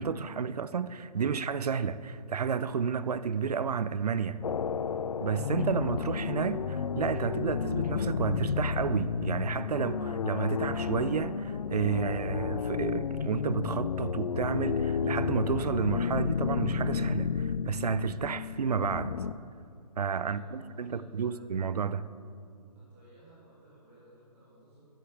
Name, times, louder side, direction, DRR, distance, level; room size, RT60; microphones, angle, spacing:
voice 1, 0.0-4.4 5.2-19.2 20.0-22.1, right 6 dB, 70° right, 0.6 m, -31 dB
sound 1, 4.4-19.3, left 6 dB, 65° left, 0.5 m, -32 dB
voice 2, 20.2-21.4 22.7-24.8, right 1 dB, 15° right, 2.5 m, -58 dB
10.5 x 10.0 x 7.0 m
hypercardioid pair, 170°, 21 cm